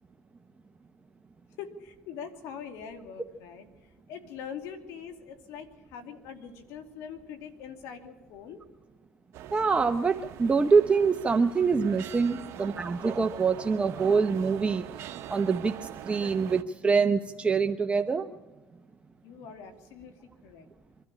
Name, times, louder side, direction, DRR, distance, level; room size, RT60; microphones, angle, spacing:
voice 1, 1.6-8.6 19.2-20.7, left 7 dB, 80° left, 6 dB, 2.6 m, -43 dB
sound 1, 9.3-16.6, right 11 dB, 65° right, 1.2 m, -43 dB
voice 2, 9.5-14.9 15.3-18.3, right 5 dB, 25° right, 7 dB, 0.9 m, -25 dB
24.5 x 12.5 x 8.7 m, 1.1 s
supercardioid pair, 95°, 5 cm